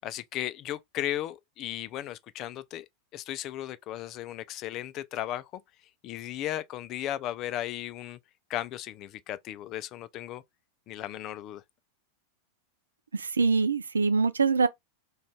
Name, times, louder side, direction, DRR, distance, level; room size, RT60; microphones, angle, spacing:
voice 1, 0.0-2.9 3.1-5.6 6.0-8.2 8.5-10.4 10.9-11.6, left 13 dB, 35° left, 0.3 m, -35 dB
voice 2, 13.1-14.7, right 4 dB, 75° right, 0.3 m, -24 dB
2.5 x 2.3 x 3.4 m
figure-of-eight pair, 90°, 0 cm